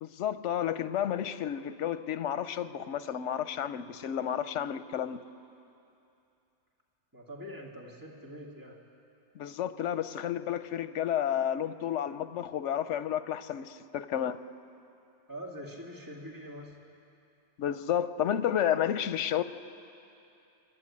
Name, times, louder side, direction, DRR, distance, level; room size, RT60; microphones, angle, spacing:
voice 1, 0.0-5.2 9.3-14.4 17.6-19.4, left 10 dB, 85° left, 13 dB, 1.0 m, -31 dB
voice 2, 7.1-8.8 15.3-16.8, equal, 15° right, -1 dB, 2.3 m, -44 dB
27.0 x 11.0 x 8.6 m, 2.7 s
omnidirectional pair, 1.2 m